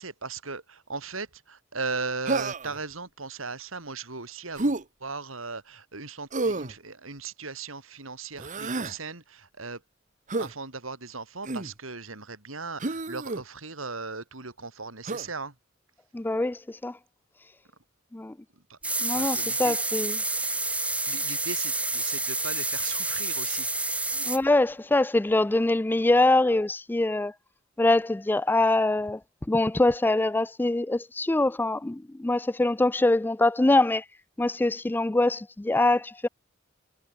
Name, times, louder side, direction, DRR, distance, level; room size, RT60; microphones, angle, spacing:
voice 1, 0.0-9.8 10.3-15.5 18.5-18.8 19.1-19.8 20.5-23.7, right 4 dB, 85° right, 4.4 m, -38 dB
Human voice, 2.3-2.8 4.6-4.8 6.3-6.7 8.4-9.0 10.3-10.5 11.4-11.7 12.8-13.4 15.1-15.3, right 2 dB, 40° right, 1.3 m, -29 dB
voice 2, 16.1-17.0 18.1-18.4 19.0-20.2 24.2-27.3 27.8-29.2 29.5-34.0 34.4-36.3, left 2 dB, 10° left, 0.3 m, -24 dB
sound 1, 18.8-24.4, right 2 dB, 5° right, 1.1 m, -29 dB
head